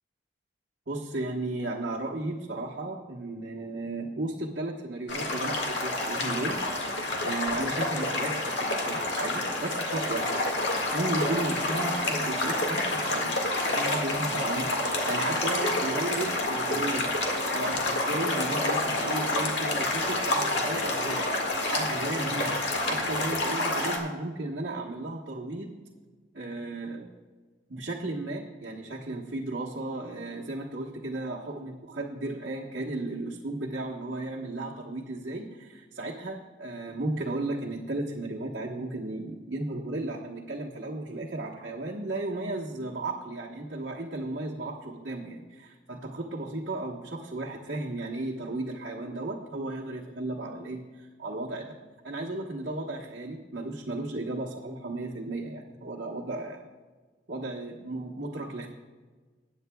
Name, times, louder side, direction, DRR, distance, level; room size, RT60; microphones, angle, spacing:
voice 1, 0.9-6.6 7.2-10.5 10.9-17.1 17.5-21.3 21.7-22.6 22.9-25.7 26.3-27.1 27.7-51.8 52.0-56.6 57.3-58.7, right 2 dB, 55° right, -5 dB, 1.2 m, -34 dB
sound 1, 5.1-24.0, left 2 dB, 65° left, 1.9 m, -28 dB
20.5 x 9.4 x 2.3 m, 1.4 s
head